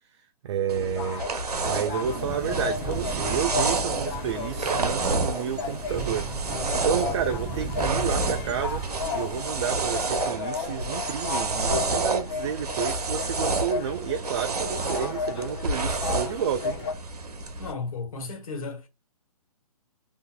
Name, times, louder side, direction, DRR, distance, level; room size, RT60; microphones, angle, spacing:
voice 1, 0.4-1.2 1.6-6.5 6.8-8.8 9.1-16.8, right 8 dB, 45° right, 0.4 m, -30 dB
sound 1, 0.7-17.7, right 3 dB, 85° right, 0.9 m, -30 dB
sound 2, 0.8-16.9, left 5 dB, 40° left, 0.8 m, -35 dB
sound 3, 2.0-10.2, right 4 dB, 10° right, 0.9 m, -36 dB
voice 2, 17.6-18.9, left 4 dB, 65° left, 1.2 m, -34 dB
3.6 x 2.7 x 2.3 m
hypercardioid pair, 140°, 19 cm